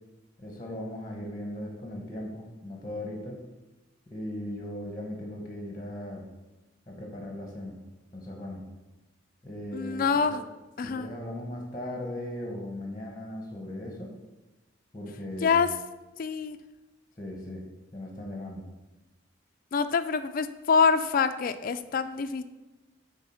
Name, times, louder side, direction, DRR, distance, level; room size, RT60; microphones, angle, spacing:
voice 1, 0.4-3.4 4.1-6.3 6.9-7.8 8.1-8.6 9.4-10.4 10.8-14.1 14.9-15.7 17.2-17.6 17.9-18.6, left 1 dB, 20° left, 1 dB, 1.0 m, -38 dB
voice 2, 9.7-10.4 10.8-11.1 15.4-15.7 16.2-16.6 19.7-22.4, left 5 dB, 45° left, 10 dB, 0.3 m, -25 dB
7.1 x 4.0 x 5.6 m, 1.1 s
head